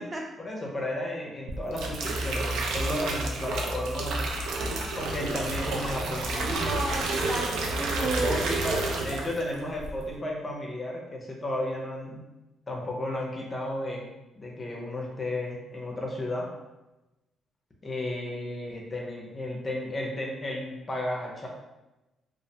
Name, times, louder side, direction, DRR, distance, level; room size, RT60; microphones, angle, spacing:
voice 1, 0.4-4.2 4.9-6.8 7.2-7.3 8.0-12.2 12.7-14.1 14.4-16.5 17.8-21.5, left 1 dB, 30° left, -1 dB, 0.5 m, -33 dB
sound 1, 1.5-9.5 9.8-10.2, right 2 dB, 85° right, 0.3 m, -30 dB
voice 2, 4.5-5.0 6.4-8.4, right 2 dB, 25° right, 0 dB, 0.5 m, -33 dB
2.4 x 2.0 x 2.7 m, 1.0 s
cardioid pair, 90°, 0 cm